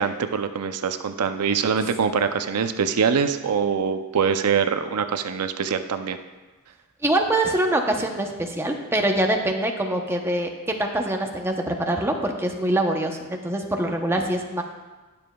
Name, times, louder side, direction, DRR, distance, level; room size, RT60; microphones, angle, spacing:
voice 1, 0.0-6.2, right 6 dB, 85° right, 8 dB, 0.5 m, -24 dB
voice 2, 7.0-14.6, right 1 dB, 10° right, 2 dB, 0.8 m, -24 dB
20.0 x 6.9 x 2.3 m, 1.2 s
head